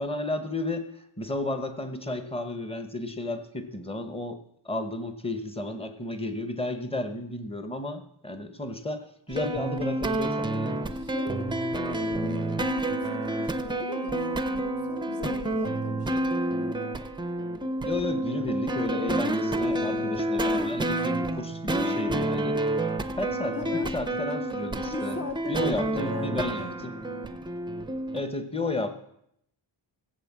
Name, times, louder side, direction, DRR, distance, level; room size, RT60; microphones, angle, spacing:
voice 1, 0.0-10.8 17.8-22.6 23.2-25.2 25.5-26.9 28.1-28.9, left 2 dB, 10° left, 9 dB, 1.0 m, -33 dB
sound 1, 9.3-28.2, right 1 dB, 10° right, 0.5 m, -29 dB
voice 2, 10.9-16.8 19.4-20.2 23.5-23.9 24.9-26.9, left 5 dB, 30° left, 7 dB, 0.7 m, -40 dB
15.5 x 8.1 x 7.4 m, 0.76 s
wide cardioid pair, 180°, 49 cm